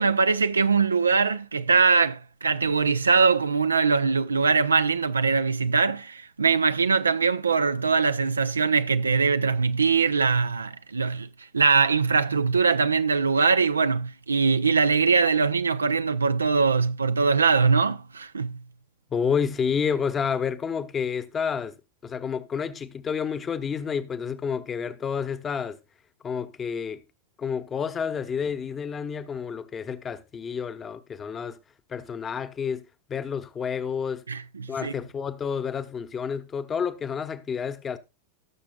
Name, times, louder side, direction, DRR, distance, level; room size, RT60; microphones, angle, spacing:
voice 1, 0.0-11.3 11.5-18.6 34.3-34.9, right 5 dB, 75° right, 0.5 m, -22 dB
voice 2, 19.1-21.8 22.0-25.8 26.2-27.0 27.4-31.6 31.9-32.8 33.1-34.2 34.7-38.0, left 6 dB, 20° left, 1.0 m, -29 dB
17.5 x 6.9 x 2.3 m
figure-of-eight pair, 90°, 0 cm